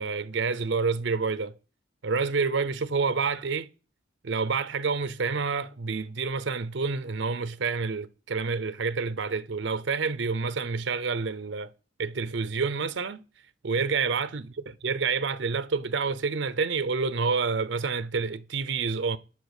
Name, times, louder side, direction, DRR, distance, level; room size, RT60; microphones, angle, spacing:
voice 1, 0.0-1.5 2.0-3.7 4.2-11.7 12.0-13.2 13.6-19.2, right 4 dB, 70° right, 0.6 m, -28 dB
12.0 x 4.6 x 8.1 m
head